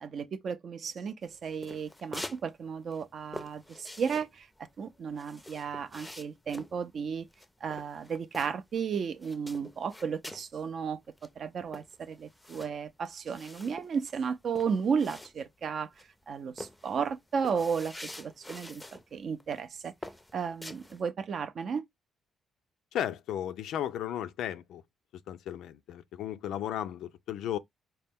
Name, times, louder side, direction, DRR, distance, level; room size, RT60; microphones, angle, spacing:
voice 1, 0.0-4.5 4.8-7.3 7.6-11.0 11.4-19.9 20.3-21.8, right 6 dB, 55° right, 0.4 m, -34 dB
sound 1, 1.2-2.4 2.7-8.8 9.1-10.5 10.9-11.0 11.2-15.7 16.0-16.2 16.6-19.0 19.4-19.6 20.0-21.0, left 1 dB, 10° left, 0.4 m, -46 dB
voice 2, 22.9-24.8 25.3-27.6, left 11 dB, 80° left, 0.3 m, -35 dB
4.2 x 2.1 x 3.5 m
cardioid pair, 90°, 0 cm